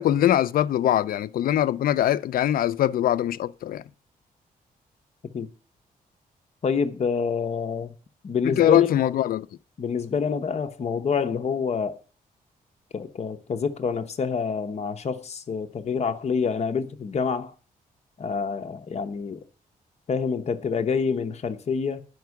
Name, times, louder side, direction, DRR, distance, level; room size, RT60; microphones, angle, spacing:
voice 1, 0.0-3.8 8.4-9.5, left 12 dB, 75° left, 0.4 m, -22 dB
voice 2, 6.6-7.9 8.2-9.1 9.8-12.0 12.9-17.5 18.2-19.4 20.1-22.0, left 5 dB, 45° left, 0.8 m, -27 dB
9.3 x 5.1 x 4.7 m
wide cardioid pair, 125°, 15 cm